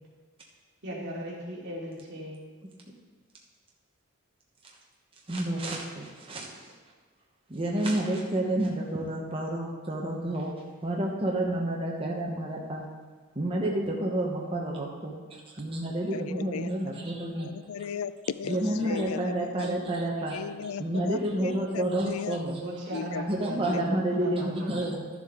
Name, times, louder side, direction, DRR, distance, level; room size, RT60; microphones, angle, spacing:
voice 1, 0.8-2.4 22.6-24.8, equal, 55° right, -5 dB, 2.6 m, -37 dB
voice 2, 5.3-6.5 7.5-10.5 10.8-12.9 13.3-17.5 18.5-20.4 20.8-22.6 23.3-25.0, right 1 dB, 25° right, -2 dB, 1.1 m, -29 dB
voice 3, 16.1-16.8 17.4-18.1 18.4-19.8 20.3-22.4 22.9-23.2 23.7-23.8, left 6 dB, 75° left, 14 dB, 0.4 m, -36 dB
12.5 x 7.3 x 3.8 m, 1.4 s
head